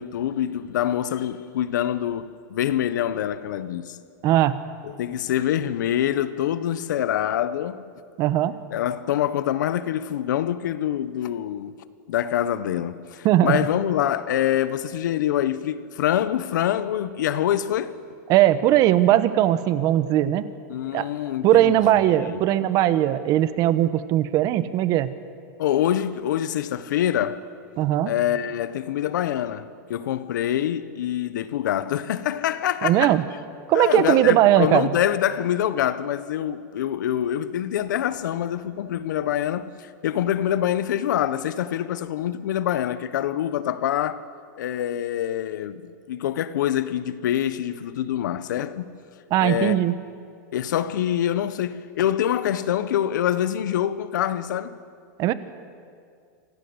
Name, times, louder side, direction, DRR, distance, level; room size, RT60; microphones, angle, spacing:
voice 1, 0.0-4.0 4.8-7.9 8.7-11.7 12.1-17.9 20.7-21.7 22.1-22.4 25.6-27.4 28.0-33.2 33.7-44.2 44.6-48.9 49.4-49.9 50.5-54.8, left 11 dB, 80° left, 1.3 m, -25 dB
voice 2, 4.2-4.6 8.2-8.6 13.2-13.6 18.3-20.4 20.9-21.1 21.4-25.1 27.8-28.1 32.8-33.2 33.7-34.9 49.3-49.9 55.2-55.3, right 13 dB, 35° right, 1.1 m, -19 dB
26.5 x 18.0 x 8.1 m
supercardioid pair, 145°, 10 cm